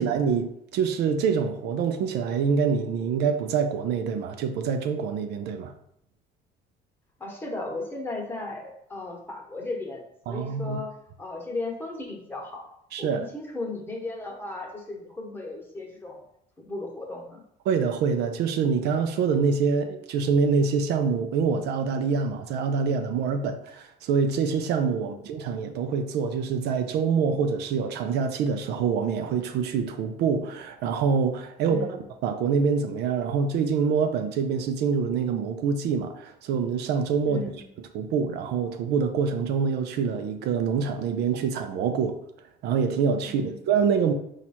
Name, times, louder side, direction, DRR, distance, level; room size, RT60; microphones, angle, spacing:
voice 1, 0.0-5.7 10.3-10.8 12.9-13.3 17.7-31.9 32.2-37.4 37.9-42.2 42.6-44.1, right 6 dB, 80° right, 0.5 m, -25 dB
voice 2, 7.2-12.6 13.0-16.2 16.6-17.4 25.0-25.1 31.6-32.0 37.2-37.6 43.2-43.5, left 2 dB, 10° left, 1.1 m, -36 dB
4.4 x 2.4 x 4.2 m
cardioid pair, 110°, 17 cm